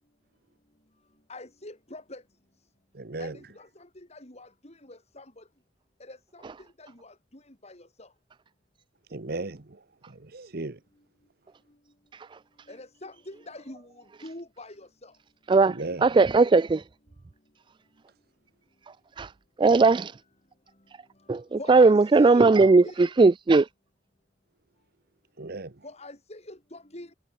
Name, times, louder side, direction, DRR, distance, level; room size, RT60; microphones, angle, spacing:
voice 1, 1.3-2.2 3.2-5.4 6.0-6.4 6.8-7.1 7.6-8.1 12.7-13.9 14.2-15.1 21.6-22.9 25.8-27.1, left 2 dB, 35° left, 5.2 m, -44 dB
voice 2, 2.9-3.5 9.0-10.8 15.6-16.2 18.1-18.2 25.4-25.8, right 2 dB, 60° right, 1.1 m, -37 dB
voice 3, 16.0-16.8 19.2-19.3 19.6-20.2 21.3-23.7, right 3 dB, 25° right, 0.3 m, -18 dB
head